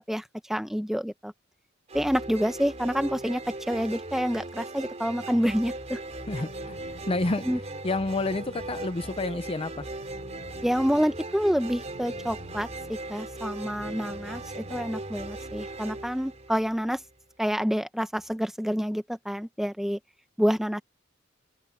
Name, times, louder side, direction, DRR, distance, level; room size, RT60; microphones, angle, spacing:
voice 1, 0.5-1.3 1.9-6.0 7.5-7.6 10.6-17.0 17.4-20.0 20.4-20.8, equal, ahead, 1.0 m, -28 dB
sound 1, 1.9-17.1, right 2 dB, 35° right, 3.3 m, -39 dB
sound 2, 6.1-15.3, left 1 dB, 50° left, 3.3 m, -48 dB
voice 2, 6.3-7.5 7.8-9.9, left 2 dB, 30° left, 0.6 m, -29 dB
head